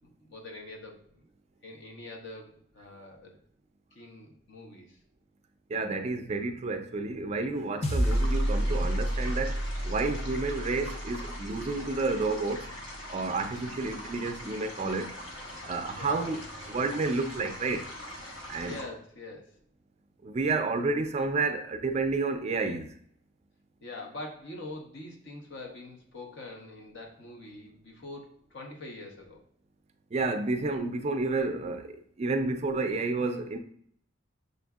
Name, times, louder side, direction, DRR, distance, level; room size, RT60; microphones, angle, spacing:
voice 1, 0.3-1.2 1.6-3.4 3.9-5.0 15.9-16.3 18.6-19.6 23.8-29.4, left 2 dB, 60° left, 0.9 m, -44 dB
voice 2, 5.7-12.7 13.1-15.1 15.6-16.4 16.7-17.9 18.5-18.8 20.2-22.9 30.1-33.6, right 3 dB, 35° right, 0.3 m, -30 dB
sound 1, 7.8-12.4, equal, 30° left, 0.5 m, -30 dB
sound 2, 8.0-18.8, left 1 dB, 90° left, 1.0 m, -43 dB
6.5 x 2.6 x 2.3 m
head